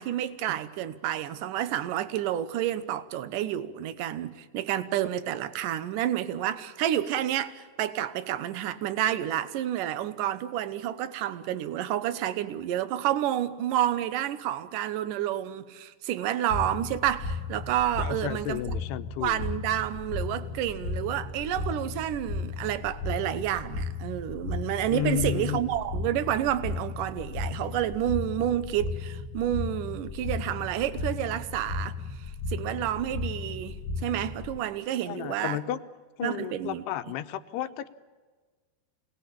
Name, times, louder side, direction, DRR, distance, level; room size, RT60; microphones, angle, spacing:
voice 1, 0.0-18.7 19.2-32.0 32.5-35.6 36.2-36.8, right 11 dB, 70° right, 2.3 m, -29 dB
sound 1, 16.5-34.6, left 4 dB, 50° left, 1.9 m, -35 dB
voice 2, 18.0-19.4 24.9-25.6 35.1-35.8 36.2-37.9, left 11 dB, 80° left, 3.0 m, -32 dB
27.0 x 19.5 x 8.7 m
omnidirectional pair, 4.7 m